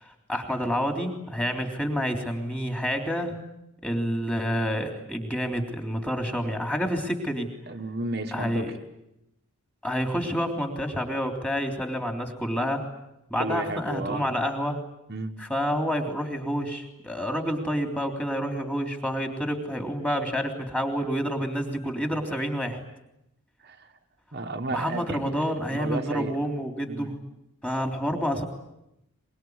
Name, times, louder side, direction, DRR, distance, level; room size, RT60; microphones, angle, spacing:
voice 1, 0.0-3.4 3.8-7.5 8.3-8.7 9.8-12.9 13.3-14.8 15.5-22.8 24.7-27.1 27.6-28.4, equal, 5° left, 3 dB, 3.4 m, -28 dB
voice 2, 7.7-8.8 13.4-14.3 15.1-15.4 23.6-24.0 24.3-26.4 26.9-27.1, right 2 dB, 45° right, 3 dB, 1.4 m, -33 dB
24.0 x 22.0 x 9.6 m, 0.87 s
head